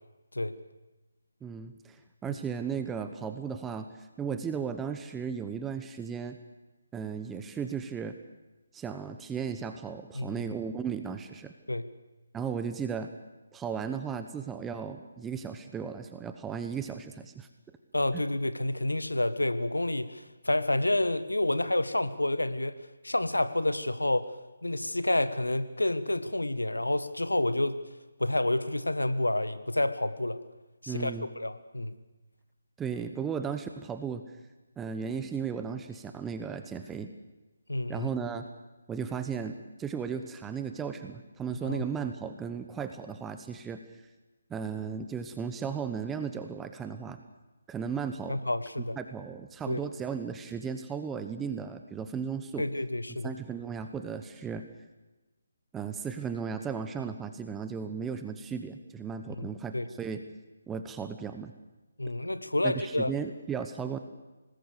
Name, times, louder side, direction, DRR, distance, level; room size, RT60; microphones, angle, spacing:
voice 1, 1.4-6.4 6.9-8.2 8.7-11.5 12.3-13.1 13.5-17.5 18.1-18.2 30.9-31.3 32.8-34.2 34.8-37.1 37.9-38.4 38.9-43.8 44.5-47.2 47.7-48.4 49.0-52.7 53.2-54.6 55.7-60.2 60.7-61.5 62.6-64.0, right 6 dB, 10° right, 8 dB, 1.1 m, -35 dB
voice 2, 17.9-22.8 23.0-24.4 24.6-27.8 28.2-30.4 30.8-31.1 31.4-32.0 37.7-38.1 41.5-41.8 48.3-49.0 49.7-49.8 52.6-53.3 59.3-59.5 59.7-59.9 62.0-63.1, left 1 dB, 85° left, 13 dB, 1.4 m, -29 dB
25.0 x 20.0 x 6.8 m, 1.1 s
figure-of-eight pair, 150°, 0 cm